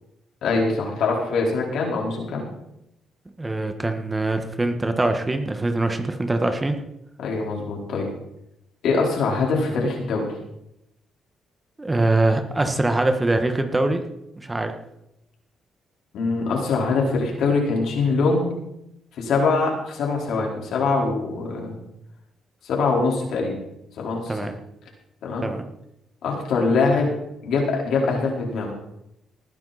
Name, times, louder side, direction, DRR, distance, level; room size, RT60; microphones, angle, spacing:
voice 1, 0.4-2.4 7.2-8.1 8.8-10.3 16.1-18.5 19.1-21.8 22.6-23.5 24.0-24.5 25.2-25.5 26.2-27.1 27.4-28.7, left 4 dB, 75° left, -1 dB, 4.4 m, -23 dB
voice 2, 3.4-6.8 11.8-14.0 14.3-14.7 24.3-24.5 25.4-25.6, right 2 dB, 20° right, 6 dB, 1.6 m, -23 dB
19.0 x 10.0 x 4.3 m, 0.83 s
cardioid pair, 90°, 0 cm